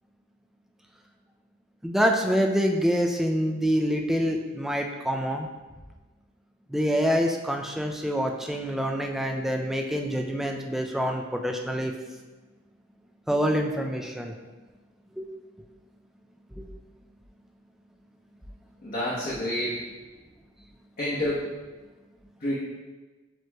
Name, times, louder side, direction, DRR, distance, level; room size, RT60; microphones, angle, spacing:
voice 1, 1.8-5.5 6.7-11.9 13.3-14.3 15.2-15.3 16.6-16.7, equal, ahead, 2 dB, 0.3 m, -26 dB
voice 2, 18.8-19.8 21.0-21.5 22.4-22.6, left 1 dB, 45° left, -9 dB, 0.9 m, -28 dB
7.5 x 3.0 x 2.2 m, 1.2 s
head